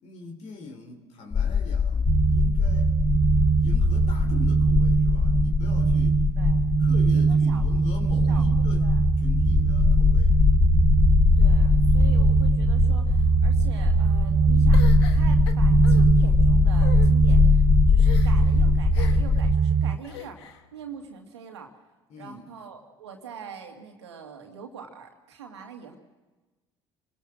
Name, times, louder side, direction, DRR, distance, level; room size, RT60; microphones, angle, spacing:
voice 1, 0.0-2.9 3.6-6.2 6.8-10.4 22.1-22.5, left 3 dB, 60° left, 3 dB, 3.2 m, -42 dB
sound 1, 1.3-19.6, left 7 dB, 30° left, 0.6 m, -22 dB
sound 2, 2.1-20.0, right 6 dB, 35° right, 1.1 m, -22 dB
voice 2, 7.1-7.6 8.3-8.5 8.8-9.0 11.4-17.5 17.9-20.5 20.7-21.7 22.2-26.0, right 6 dB, 85° right, 3 dB, 2.2 m, -43 dB
sound 3, 14.7-16.0 16.7-17.1 18.0-18.5 18.9-19.4 20.0-20.6, left 12 dB, 75° left, 1.2 m, -40 dB
28.0 x 19.5 x 6.3 m, 1.2 s
hypercardioid pair, 55°, 14 cm